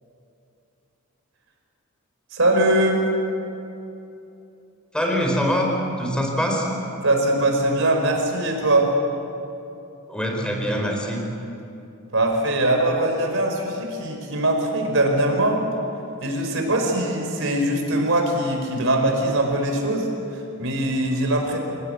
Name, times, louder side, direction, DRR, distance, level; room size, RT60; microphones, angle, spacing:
voice 1, 2.3-3.0 7.0-8.9 12.1-15.6 16.2-21.6, right 1 dB, 60° right, 2 dB, 5.1 m, -22 dB
voice 2, 4.9-6.7 10.1-11.3, equal, 5° left, 0 dB, 4.5 m, -24 dB
29.0 x 18.0 x 8.2 m, 2.8 s
head